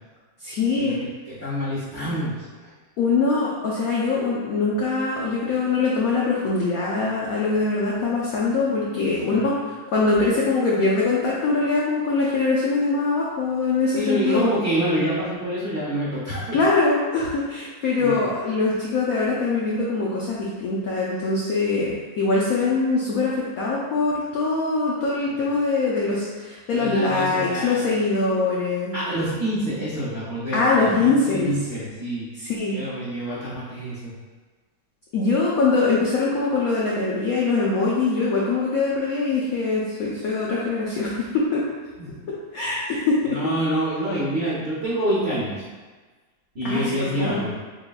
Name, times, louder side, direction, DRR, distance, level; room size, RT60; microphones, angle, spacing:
voice 1, 0.4-1.0 3.0-14.5 16.5-28.9 30.5-31.5 32.4-32.8 35.1-41.6 42.5-43.5 46.6-47.5, left 3 dB, 75° left, -5 dB, 0.8 m, -23 dB
voice 2, 1.3-2.7 9.2-9.4 13.9-16.6 18.0-18.3 25.2-25.4 26.8-27.9 28.9-32.3 32.7-34.1 42.0-42.2 43.2-45.7 46.5-47.6, right 1 dB, 45° right, -9 dB, 0.9 m, -27 dB
6.6 x 2.2 x 2.3 m, 1.3 s
omnidirectional pair, 2.2 m